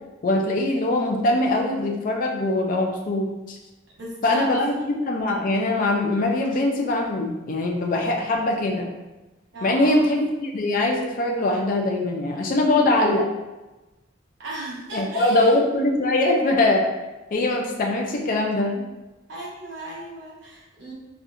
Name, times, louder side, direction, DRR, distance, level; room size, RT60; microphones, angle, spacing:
voice 1, 0.2-3.6 4.2-8.9 9.6-13.2 14.9-16.9 17.3-18.8, left 2 dB, 45° left, 1 dB, 0.4 m, -22 dB
voice 2, 4.0-4.5 4.7-4.9 9.5-10.1 14.4-15.6 19.3-20.9, right 2 dB, 65° right, -5 dB, 1.1 m, -36 dB
4.2 x 2.4 x 2.5 m, 1.1 s
head